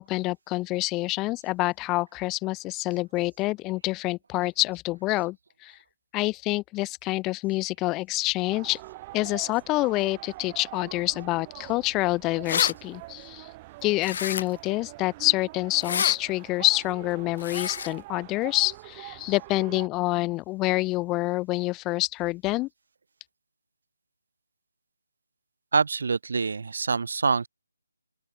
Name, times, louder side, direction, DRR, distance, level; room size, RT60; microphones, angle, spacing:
voice 1, 0.0-5.4 5.6-5.8 6.1-8.8 9.1-13.5 13.8-22.7, left 20 dB, 15° left, 2.2 m, -27 dB
sound 1, 8.5-19.9, right 20 dB, 20° right, 4.1 m, -44 dB
sound 2, 12.0-12.1 12.3-12.7 14.0-14.7 15.7-16.2 17.4-17.9, left 7 dB, 40° left, 2.9 m, -28 dB
voice 2, 25.7-27.5, right 5 dB, 55° right, 1.4 m, -25 dB
open air
figure-of-eight pair, 160°, 0 cm